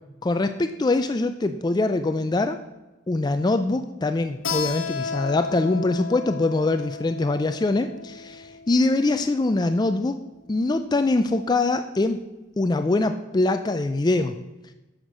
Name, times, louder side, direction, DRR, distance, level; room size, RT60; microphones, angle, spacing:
voice 1, 0.2-2.6 3.1-10.2 10.5-12.2 12.6-14.4, left 2 dB, 20° left, 9 dB, 0.3 m, -23 dB
Keyboard (musical), 4.4-9.7, left 6 dB, 75° left, 1.2 m, -34 dB
8.0 x 6.5 x 6.2 m, 1.1 s
head